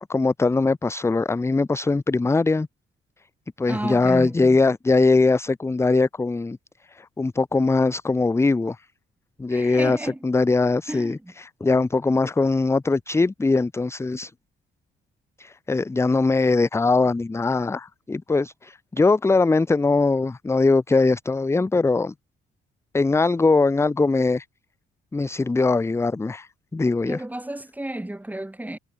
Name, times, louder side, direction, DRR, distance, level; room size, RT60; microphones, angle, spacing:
voice 1, 0.0-2.7 3.6-6.6 6.9-8.9 9.4-14.3 15.4-22.1 22.9-24.5 25.1-27.2, left 3 dB, 15° left, 0.6 m, -21 dB
voice 2, 3.7-4.6 9.5-10.2 10.9-11.3 27.0-28.8, right 1 dB, 10° right, 2.2 m, -32 dB
cardioid pair, 90°, 20 cm